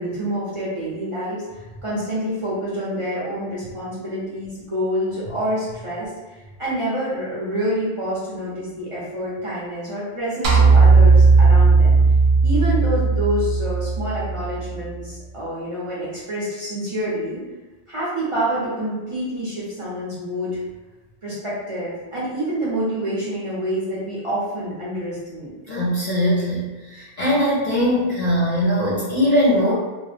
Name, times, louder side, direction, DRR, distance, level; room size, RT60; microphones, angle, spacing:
voice 1, 0.0-12.0 12.4-17.4 17.9-20.6 21.2-25.6, equal, 35° right, -8 dB, 0.6 m, -27 dB
sound 1, 10.4-14.9, right 4 dB, 75° right, 0.8 m, -15 dB
voice 2, 25.7-29.7, equal, 45° left, -6 dB, 0.6 m, -20 dB
2.3 x 2.0 x 3.2 m, 1.2 s
omnidirectional pair, 1.1 m